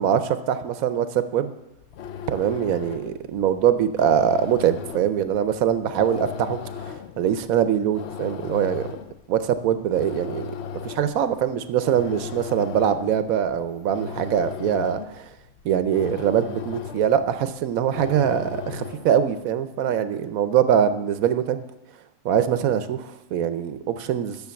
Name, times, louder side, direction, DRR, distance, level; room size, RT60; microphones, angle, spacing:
voice 1, 0.0-1.5 2.3-6.6 6.9-8.9 9.3-10.5 10.8-15.2 15.6-21.6 22.2-24.4, right 9 dB, 65° right, 11 dB, 1.0 m, -23 dB
sound 1, 1.7-19.3, left 7 dB, 75° left, 0.6 m, -37 dB
10.5 x 6.4 x 6.9 m, 0.92 s
omnidirectional pair, 1.8 m